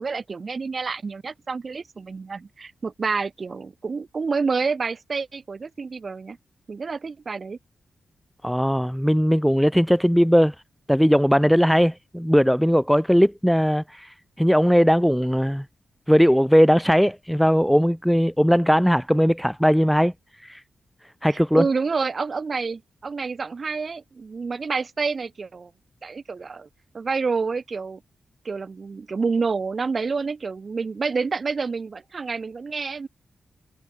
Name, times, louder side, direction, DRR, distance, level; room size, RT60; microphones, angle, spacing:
voice 1, 0.0-6.4 6.7-7.6 21.3-25.7 26.0-26.7 26.9-28.0 28.4-33.1, right 4 dB, 50° right, 6.7 m, -28 dB
voice 2, 8.4-10.5 10.9-14.1 14.4-15.6 16.1-20.1 20.5-20.6 21.2-21.7, equal, ahead, 1.9 m, -19 dB
supercardioid pair, 40°, 0 cm